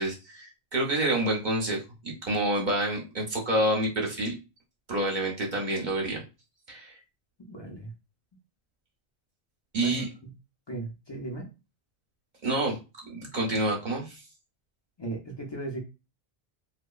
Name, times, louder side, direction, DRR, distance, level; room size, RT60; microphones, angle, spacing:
voice 1, 0.0-4.4 4.9-6.2 6.7-6.9 9.7-10.1 12.4-12.8 13.1-14.2, right 1 dB, 50° right, 0 dB, 0.8 m, -28 dB
voice 2, 7.5-7.9 9.8-10.0 10.2-10.3 10.7-11.5 15.0-15.8, right 2 dB, 35° left, -1 dB, 0.4 m, -36 dB
2.8 x 2.1 x 2.3 m, 0.28 s
omnidirectional pair, 1.1 m